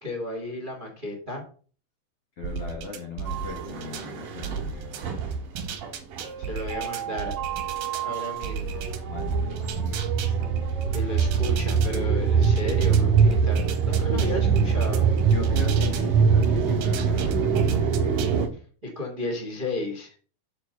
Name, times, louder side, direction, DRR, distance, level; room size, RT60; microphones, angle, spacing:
voice 1, 0.0-1.4 6.4-7.3 8.0-8.8 10.9-15.1 18.8-20.2, left 2 dB, 20° right, 2 dB, 1.4 m, -33 dB
voice 2, 2.4-5.4 9.0-10.7 15.2-18.5, left 5 dB, 50° left, 2 dB, 2.0 m, -39 dB
sound 1, 2.4-4.1 4.4-8.1 8.4-12.0 12.4-16.1 16.4-18.4, right 5 dB, 80° right, 3.0 m, -34 dB
sound 2, 3.3-18.5, right 6 dB, 65° right, 2.9 m, -24 dB
8.2 x 5.1 x 6.4 m, 0.41 s
omnidirectional pair, 4.3 m